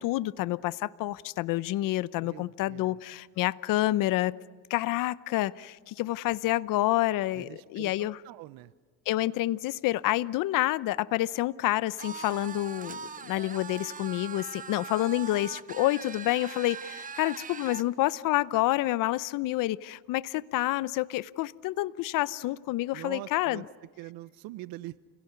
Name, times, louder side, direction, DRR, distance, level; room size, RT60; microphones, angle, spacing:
voice 1, 0.0-4.4 4.7-8.2 9.1-23.6, left 16 dB, 60° left, 18 dB, 0.7 m, -28 dB
voice 2, 2.2-3.0 7.3-8.7 22.9-23.6 24.0-25.0, right 17 dB, 70° right, 17 dB, 0.8 m, -43 dB
sound 1, 12.0-17.9, right 6 dB, 20° right, 0.8 m, -41 dB
29.0 x 17.0 x 9.5 m, 1.4 s
cardioid pair, 115°, 37 cm